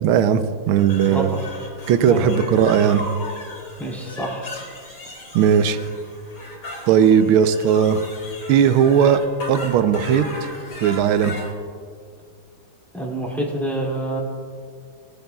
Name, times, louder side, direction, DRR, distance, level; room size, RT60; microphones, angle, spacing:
voice 1, 0.0-1.3 1.9-3.0 5.3-5.8 6.9-8.0 8.5-9.2 9.5-10.3 10.8-11.3, right 8 dB, 85° right, 11 dB, 1.5 m, -17 dB
sound 1, 0.8-11.5, left 1 dB, 55° left, 3.5 m, -36 dB
voice 2, 2.1-2.4 3.8-4.4 12.9-14.2, right 1 dB, ahead, -4 dB, 2.2 m, -27 dB
20.5 x 9.1 x 2.3 m, 2.1 s
omnidirectional pair, 2.3 m